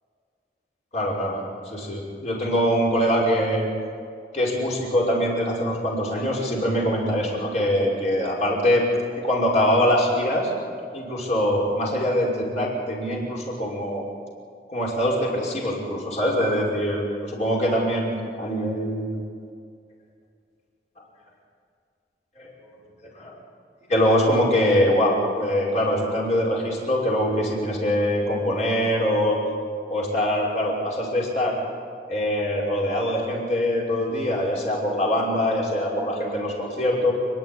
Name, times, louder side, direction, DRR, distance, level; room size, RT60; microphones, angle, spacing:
voice 1, 0.9-1.4 1.7-3.7 4.3-8.8 9.2-10.5 10.9-14.0 14.7-18.1 18.4-19.3 22.4-22.5 23.2-23.3 23.9-29.4 29.9-31.6 32.1-37.1, equal, 40° left, -3 dB, 5.5 m, -23 dB
29.5 x 11.0 x 10.0 m, 2.3 s
head